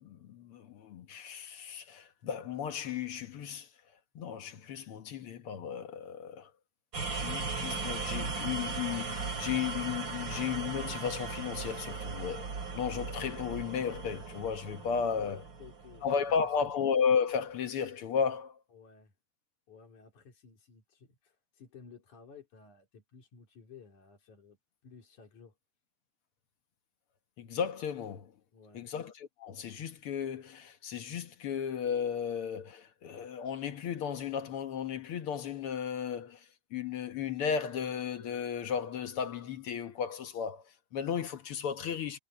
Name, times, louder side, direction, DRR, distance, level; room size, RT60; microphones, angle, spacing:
voice 1, 0.0-3.7 4.2-6.5 7.1-12.5 12.7-15.4 16.0-18.6 27.4-28.3 28.7-42.2, left 7 dB, 60° left, 1.7 m, -34 dB
sound 1, 6.9-16.7, right 4 dB, 40° right, 3.2 m, -38 dB
voice 2, 14.9-16.1 16.4-16.7 18.7-19.1 19.7-24.6 24.8-25.6 28.5-28.9, left 6 dB, 85° left, 5.3 m, -55 dB
omnidirectional pair, 3.4 m